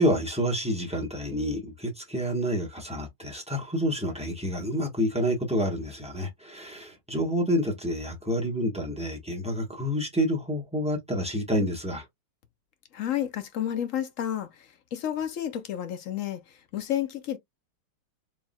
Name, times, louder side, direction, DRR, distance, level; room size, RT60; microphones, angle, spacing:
voice 1, 0.0-12.0, equal, 5° right, 0.8 m, -28 dB
voice 2, 12.9-17.4, left 10 dB, 60° left, 0.8 m, -31 dB
4.4 x 3.5 x 2.3 m
omnidirectional pair, 2.1 m